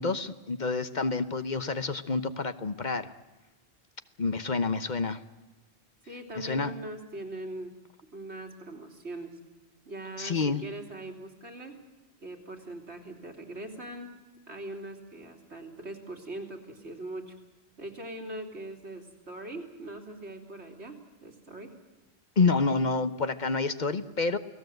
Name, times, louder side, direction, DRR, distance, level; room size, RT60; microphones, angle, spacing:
voice 1, 0.0-3.1 4.2-5.2 6.4-6.7 10.2-10.6 22.4-24.4, left 4 dB, 45° left, 12 dB, 1.0 m, -28 dB
voice 2, 6.1-7.8 8.1-9.4 9.9-11.7 12.2-14.1 14.5-17.4 17.8-21.7, right 1 dB, 85° right, 2 dB, 3.6 m, -41 dB
29.0 x 18.5 x 7.9 m, 1.1 s
omnidirectional pair, 1.1 m